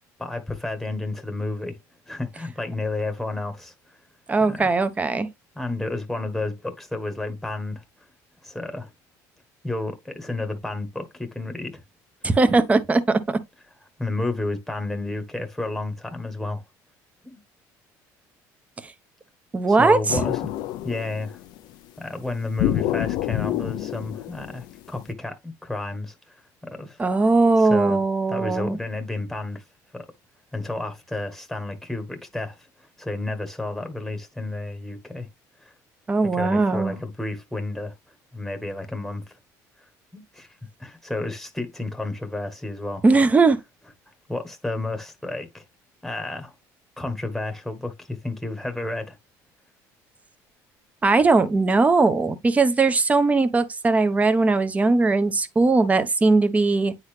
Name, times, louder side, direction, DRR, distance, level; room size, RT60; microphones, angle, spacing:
voice 1, 0.2-1.8 2.1-3.7 4.5-4.7 5.5-7.8 8.4-8.9 9.6-11.8 14.0-16.6 17.2-17.4 19.7-20.5 20.8-21.4 22.0-26.4 26.6-27.0 27.6-28.0 28.3-29.6 29.9-30.1 30.5-32.7 33.0-35.3 35.6-35.7 36.3-37.9 38.3-39.2 40.1-40.5 40.8-43.0 44.3-45.6 46.0-46.5 47.0-49.2, left 2 dB, ahead, 1.5 m, -31 dB
voice 2, 4.3-5.3 12.2-13.4 18.8-18.9 19.5-20.2 27.0-28.8 36.1-37.0 43.0-43.6 51.0-56.9, right 3 dB, 20° right, 1.1 m, -19 dB
sound 1, 20.1-21.6 22.6-25.0, left 14 dB, 70° left, 0.6 m, -27 dB
9.5 x 4.0 x 3.3 m
cardioid pair, 115°, 8 cm